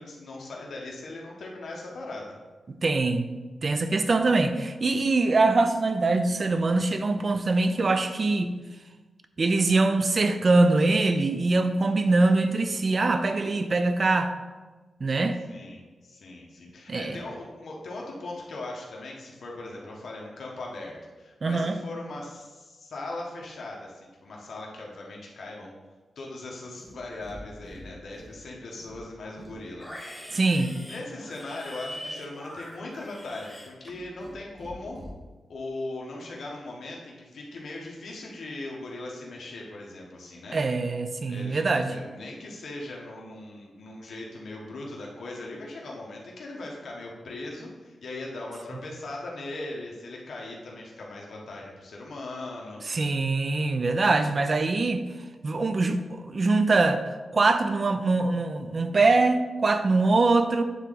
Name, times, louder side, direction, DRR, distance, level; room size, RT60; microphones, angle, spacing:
voice 1, 0.0-2.4 15.5-25.7 26.2-29.9 30.2-30.4 30.8-35.0 35.5-40.6 41.3-52.8, left 2 dB, 70° left, -2 dB, 1.3 m, -39 dB
voice 2, 2.7-3.2 3.6-8.5 9.4-14.3 15.0-15.4 16.9-17.2 21.4-21.8 30.3-30.7 40.5-42.0 52.9-55.0 55.4-60.6, right 3 dB, 40° right, 9 dB, 0.5 m, -23 dB
Livestock farm animals working animals, 26.7-27.4 27.6-28.4 28.7-34.3 34.6-35.1, equal, ahead, 1.3 m, -43 dB
9.2 x 3.7 x 3.9 m, 1.3 s
wide cardioid pair, 120°, 0 cm